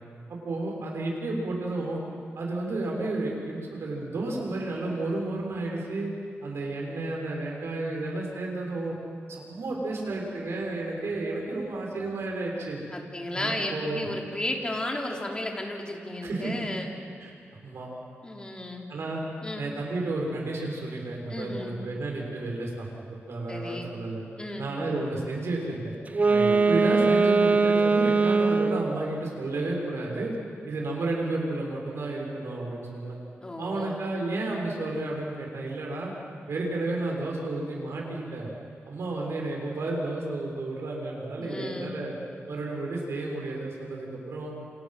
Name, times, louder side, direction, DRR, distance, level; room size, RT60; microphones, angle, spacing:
voice 1, 0.3-2.0 2.3-6.1 6.4-8.9 9.3-12.8 13.3-14.1 16.2-16.5 17.2-17.3 17.6-17.9 18.9-19.2 19.6-22.9 23.3-24.2 24.6-25.9 26.3-30.3 30.6-33.2 33.6-36.1 36.5-38.5 38.8-42.1 42.5-44.5, right 2 dB, 70° right, -1 dB, 6.4 m, -32 dB
voice 2, 12.9-16.9 18.2-18.9 19.4-19.7 21.3-21.8 23.5-23.9 24.4-24.7 33.4-34.0 41.4-42.0, left 1 dB, 20° left, 0 dB, 3.5 m, -34 dB
Wind instrument woodwind instrument, 26.1-29.0, right 4 dB, 35° right, 0.8 m, -21 dB
28.5 x 27.5 x 6.0 m, 2.4 s
wide cardioid pair, 110°, 5 cm